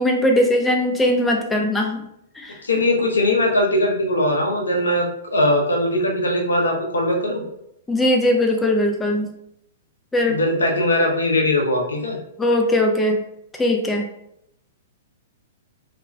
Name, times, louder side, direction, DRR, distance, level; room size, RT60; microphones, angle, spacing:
voice 1, 0.0-2.0 2.4-2.6 7.9-9.3 10.1-10.4 12.4-13.2 13.6-14.0, left 1 dB, 10° left, 1 dB, 0.4 m, -19 dB
voice 2, 2.6-7.4 10.3-12.2, left 1 dB, 85° left, 0 dB, 0.6 m, -20 dB
2.4 x 2.2 x 3.1 m, 0.79 s
figure-of-eight pair, 110°, 0 cm